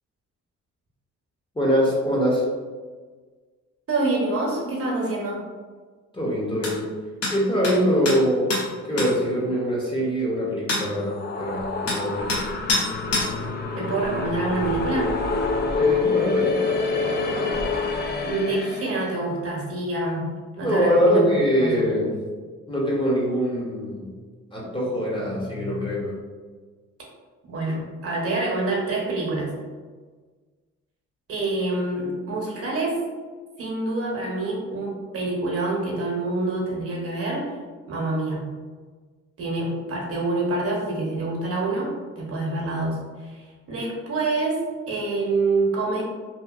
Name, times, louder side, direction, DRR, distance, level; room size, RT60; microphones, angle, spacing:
voice 1, 1.5-2.5 6.1-6.9 7.3-8.6 8.8-12.3 15.7-16.6 20.6-22.2 22.7-24.1 24.5-26.1, equal, 15° left, -5 dB, 0.8 m, -23 dB
voice 2, 3.9-5.4 13.8-15.1 18.2-21.3 21.6-21.9 27.5-29.5 31.3-33.0 33.6-37.5 37.8-38.5 39.4-46.0, right 2 dB, 50° right, -3 dB, 0.9 m, -26 dB
sound 1, 6.6-6.7 7.2-7.4 7.6-7.8 8.1-8.2 8.5-8.6 9.0-9.1 10.7-10.8 11.9-12.0 12.3-12.4 12.7-12.9 13.1-13.3, left 2 dB, 55° left, 0.8 m, -24 dB
sound 2, 10.8-19.1, left 3 dB, 35° left, 0.4 m, -26 dB
2.8 x 2.4 x 2.3 m, 1.4 s
cardioid pair, 90°, 30 cm